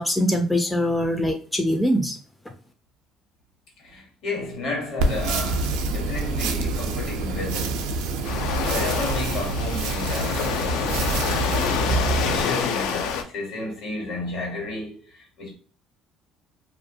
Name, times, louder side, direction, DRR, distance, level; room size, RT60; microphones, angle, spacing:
voice 1, 0.0-2.2, equal, 10° left, 0.3 m, -23 dB
voice 2, 3.8-7.9 8.6-10.8 11.5-15.5, left 2 dB, 65° left, 1.2 m, -32 dB
sound 1, 5.0-12.4, right 3 dB, 90° right, 0.4 m, -26 dB
Waves surf, 8.2-13.2, left 7 dB, 80° left, 0.3 m, -27 dB
2.4 x 2.2 x 2.6 m
cardioid pair, 110°, 0 cm